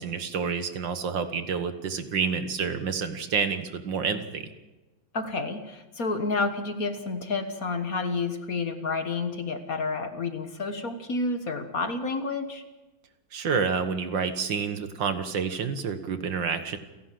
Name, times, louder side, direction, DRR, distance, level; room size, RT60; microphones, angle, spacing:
voice 1, 0.0-4.5 13.3-16.8, right 6 dB, 65° right, 9 dB, 2.1 m, -29 dB
voice 2, 5.1-12.6, left 3 dB, 45° left, 8 dB, 1.8 m, -30 dB
29.5 x 11.5 x 7.6 m, 1.1 s
omnidirectional pair, 2.2 m